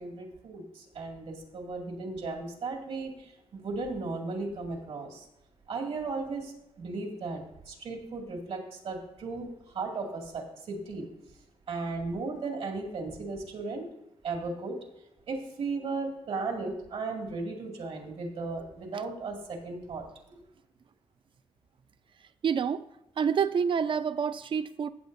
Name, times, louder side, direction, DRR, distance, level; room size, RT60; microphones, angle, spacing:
voice 1, 0.0-5.3 5.7-11.1 11.7-13.8 14.2-14.8 15.3-20.4, right 3 dB, 75° right, 2.2 m, -36 dB
voice 2, 22.4-22.8 23.2-24.9, right 7 dB, 55° right, 0.5 m, -27 dB
15.0 x 7.8 x 2.6 m
wide cardioid pair, 130°, 10 cm